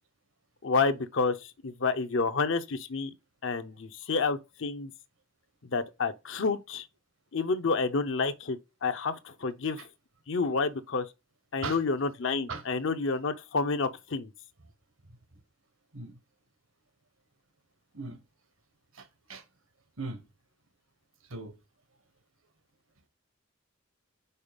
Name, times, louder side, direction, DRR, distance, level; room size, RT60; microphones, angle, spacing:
voice 1, 0.6-3.1 3.4-4.9 5.7-6.8 7.3-9.8 10.3-11.1 11.5-14.3, left 4 dB, 65° left, 0.7 m, -29 dB
voice 2, 18.9-19.4 20.0-20.2 21.3-21.5, right 3 dB, 75° right, 1.3 m, -38 dB
5.6 x 4.4 x 5.1 m
head